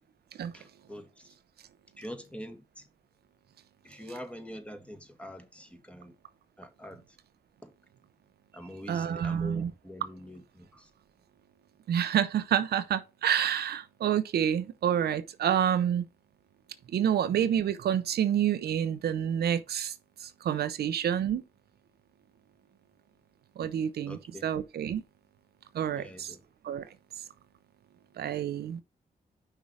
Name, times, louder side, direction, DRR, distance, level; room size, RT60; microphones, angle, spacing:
voice 1, 0.5-1.3 2.0-2.9 3.8-6.2 6.6-7.0 7.6-7.7 8.5-10.9 24.1-24.4 25.9-26.4, equal, 5° left, 2.0 m, -44 dB
voice 2, 8.9-9.7 11.9-16.1 16.9-19.9 20.2-21.4 23.6-25.0 25.7-26.3 26.6-26.9 28.2-28.8, right 9 dB, 80° right, 0.7 m, -28 dB
5.7 x 4.5 x 4.7 m
cardioid pair, 55°, 16 cm